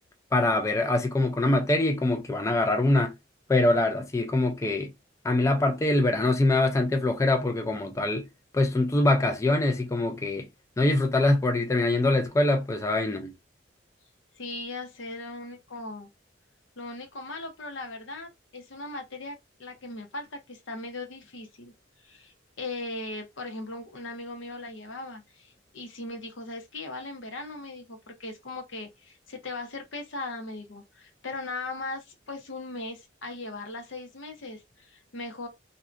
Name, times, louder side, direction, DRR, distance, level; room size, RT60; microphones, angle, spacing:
voice 1, 0.3-3.1 3.5-4.9 5.2-8.3 8.5-10.5 10.8-13.3, left 2 dB, 15° left, 0.4 m, -24 dB
voice 2, 14.4-16.1 16.8-21.7 22.0-35.5, left 2 dB, 85° left, 0.8 m, -38 dB
2.6 x 2.2 x 2.5 m
head